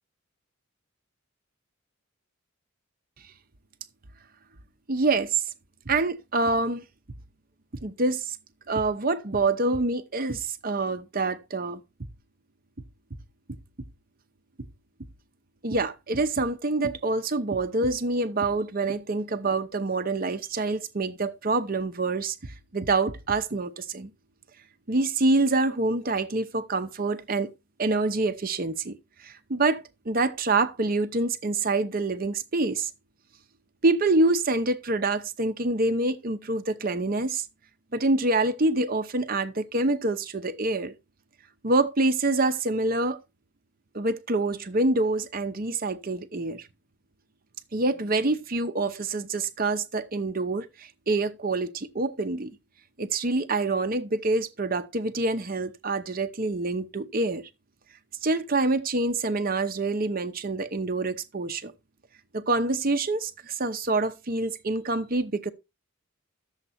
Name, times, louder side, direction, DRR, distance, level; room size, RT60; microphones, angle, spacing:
voice 1, 4.9-5.4 5.9-6.8 7.8-8.4 8.7-11.8 15.6-22.4 22.7-24.1 24.9-27.5 27.8-28.9 29.2-32.9 33.8-37.4 37.9-40.9 41.6-43.2 43.9-46.7 47.7-52.5 53.0-57.4 58.2-61.7 62.3-65.5, right 2 dB, 45° right, 0.8 m, -26 dB
11.0 x 7.4 x 4.2 m
head